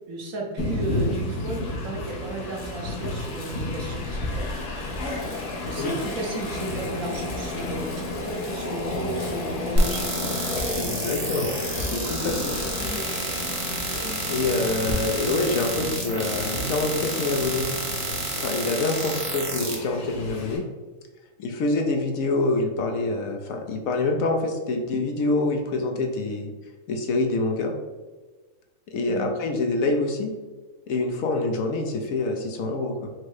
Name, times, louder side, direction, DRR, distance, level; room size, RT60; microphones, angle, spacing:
voice 1, 0.1-4.5 5.6-10.4 29.1-29.3, right 2 dB, 65° right, 0 dB, 1.1 m, -34 dB
Train, 0.6-20.6, left 2 dB, 85° left, 1.4 m, -33 dB
Bicycle, 2.6-14.9, left 2 dB, 40° left, 1.1 m, -38 dB
sound 1, 9.8-19.7, right 1 dB, 35° right, 0.5 m, -29 dB
voice 2, 10.7-12.6 14.3-17.7 18.4-20.6 21.4-26.5 26.9-27.7 28.9-30.3 30.9-33.1, left 2 dB, 70° left, 3 dB, 1.0 m, -26 dB
4.5 x 2.0 x 4.6 m, 1.3 s
omnidirectional pair, 1.6 m